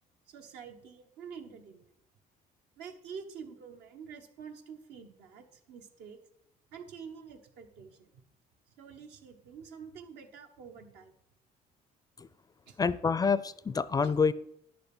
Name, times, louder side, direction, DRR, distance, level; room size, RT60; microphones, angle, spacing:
voice 1, 0.3-1.9 2.8-6.2 6.7-8.1 8.8-11.1 12.7-12.8 14.0-14.2, right 6 dB, 85° right, 5 dB, 1.4 m, -47 dB
voice 2, 12.8-14.3, left 5 dB, 20° left, 17 dB, 0.4 m, -27 dB
10.5 x 6.8 x 6.1 m, 0.76 s
cardioid pair, 110°, 17 cm